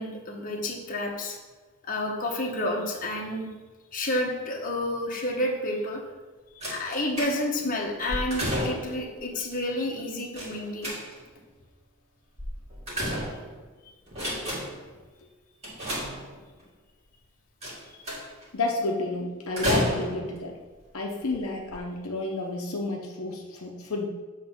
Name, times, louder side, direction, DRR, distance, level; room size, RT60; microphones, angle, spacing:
voice 1, 0.0-1.4 1.8-3.5 3.9-6.0 6.7-10.9, left 1 dB, 40° left, -1 dB, 1.1 m, -30 dB
sound 1, 6.6-7.6 8.1-9.0 10.4-11.4 12.4-13.7 14.1-14.9 15.6-16.6 17.6-18.4 19.6-20.4 21.2-21.3 21.7-21.8, equal, 30° right, 2.2 m, -31 dB
voice 2, 18.5-20.5 20.9-24.1, left 2 dB, 75° left, 0 dB, 0.8 m, -30 dB
7.7 x 3.3 x 6.0 m, 1.3 s
head